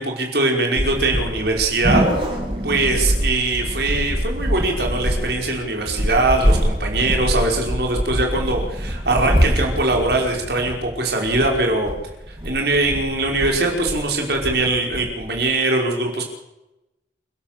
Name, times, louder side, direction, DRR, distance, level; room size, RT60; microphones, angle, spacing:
voice 1, 0.0-2.0 2.6-11.9 12.3-16.3, right 2 dB, 60° right, 1 dB, 5.4 m, -21 dB
sound 1, 0.7-15.5, equal, 30° right, 7.7 m, -24 dB
30.0 x 12.5 x 6.9 m, 0.95 s
head